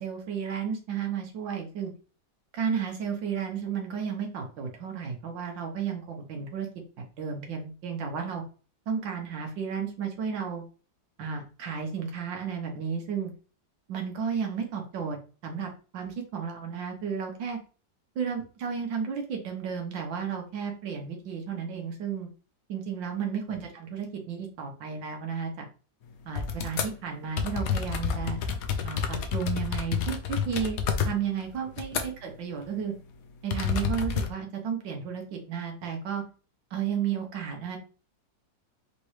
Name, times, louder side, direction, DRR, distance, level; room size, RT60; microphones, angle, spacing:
voice 1, 0.0-1.9 2.5-6.7 7.2-8.4 8.9-10.6 11.2-13.3 13.9-15.2 15.4-17.6 18.1-22.3 22.7-25.7 26.2-28.4 28.8-32.9 33.4-36.2 36.7-37.8, right 7 dB, 75° right, 3 dB, 1.7 m, -33 dB
sound 1, 26.4-26.9 27.4-32.3 32.6-32.8 33.5-34.3, left 7 dB, 65° left, 0.9 m, -29 dB
5.2 x 3.2 x 3.1 m, 0.36 s
omnidirectional pair, 2.0 m